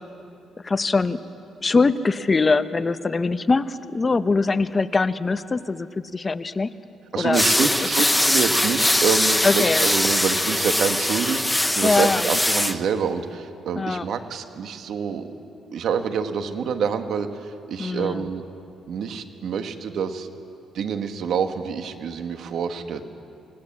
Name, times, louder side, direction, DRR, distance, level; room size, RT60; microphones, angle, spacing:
voice 1, 0.6-1.2 1.6-5.9 6.1-6.7 7.2-7.7 9.4-9.8 11.8-12.2 13.8-14.1 17.8-18.3, left 3 dB, 30° left, 12 dB, 0.9 m, -22 dB
voice 2, 7.1-15.3 15.7-18.4 18.9-20.3 20.7-23.0, right 6 dB, 70° right, 7 dB, 1.7 m, -27 dB
sound 1, 7.3-12.8, left 1 dB, 5° left, 1.0 m, -21 dB
27.5 x 18.5 x 7.5 m, 2.6 s
cardioid pair, 90°, 0 cm